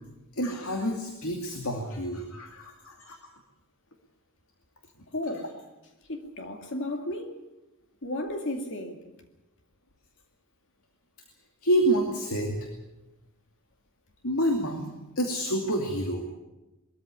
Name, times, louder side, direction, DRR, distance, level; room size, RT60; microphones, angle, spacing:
voice 1, 0.4-3.2 11.6-12.7 14.2-16.2, equal, 75° left, 2.5 m, -28 dB
voice 2, 5.1-5.5 6.1-7.4 8.0-9.0, left 1 dB, 60° left, 2.4 m, -33 dB
21.5 x 14.0 x 9.8 m
head